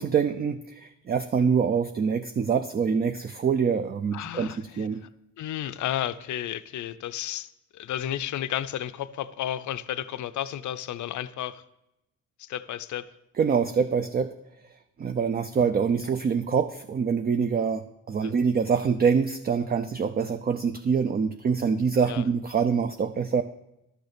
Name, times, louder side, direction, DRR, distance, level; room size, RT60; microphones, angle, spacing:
voice 1, 0.0-5.0 13.4-14.3 15.0-23.4, right 6 dB, 30° right, 8 dB, 0.4 m, -25 dB
voice 2, 4.1-4.9 5.4-11.6 12.4-13.1 15.6-15.7 18.2-18.3 22.1-22.2, left 11 dB, 70° left, 14 dB, 0.5 m, -33 dB
11.5 x 6.6 x 5.1 m, 0.88 s
cardioid pair, 115°, 30 cm